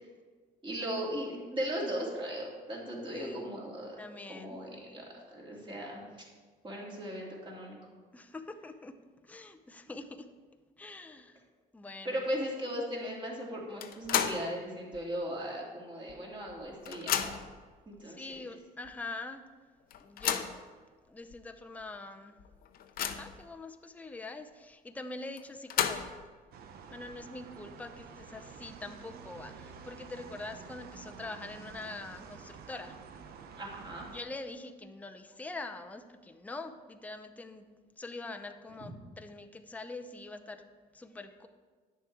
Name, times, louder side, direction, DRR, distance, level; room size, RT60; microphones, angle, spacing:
voice 1, 0.6-4.0 4.3-5.0 5.3-6.1 6.6-7.8 12.0-17.4 17.9-18.4 33.6-34.1 38.8-38.9, equal, 30° right, -2 dB, 2.6 m, -37 dB
voice 2, 3.1-3.5 4.0-5.1 8.1-9.0 9.2-10.3 10.8-11.4 11.7-12.2 18.1-19.4 20.0-20.5 21.1-22.4 23.0-26.3 26.9-33.0 34.1-37.7 38.0-41.5, left 3 dB, 10° left, 6 dB, 0.6 m, -44 dB
sound 1, 13.8-14.5 14.9-15.0 16.1-16.2 16.5-17.6 18.3-18.4 18.8-18.9 19.9-20.6 21.3-21.4 21.8-21.9 22.4-23.4 25.4-26.3, left 9 dB, 60° left, 0.7 m, -33 dB
sound 2, 26.5-34.2, right 6 dB, 65° right, 0.8 m, -49 dB
9.7 x 6.7 x 4.7 m, 1.5 s
cardioid pair, 110°, 17 cm